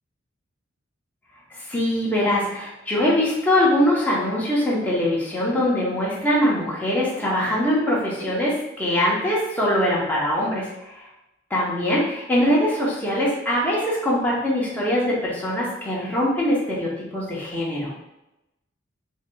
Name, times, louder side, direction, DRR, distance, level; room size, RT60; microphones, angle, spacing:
voice 1, 1.5-11.1 11.5-17.9, left 1 dB, 10° left, -6 dB, 0.8 m, -22 dB
4.6 x 2.6 x 2.3 m, 0.92 s
head